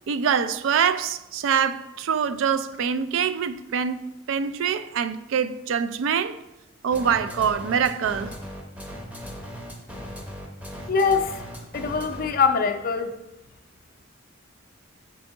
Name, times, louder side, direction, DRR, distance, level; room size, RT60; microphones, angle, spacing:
voice 1, 0.1-6.4 6.8-8.3 12.3-12.4, right 7 dB, 70° right, 0.3 m, -25 dB
sound 1, 6.9-12.5, equal, 5° right, 0.7 m, -38 dB
voice 2, 10.9-11.4 11.7-13.1, left 5 dB, 45° left, 0.4 m, -23 dB
7.0 x 3.6 x 3.7 m
head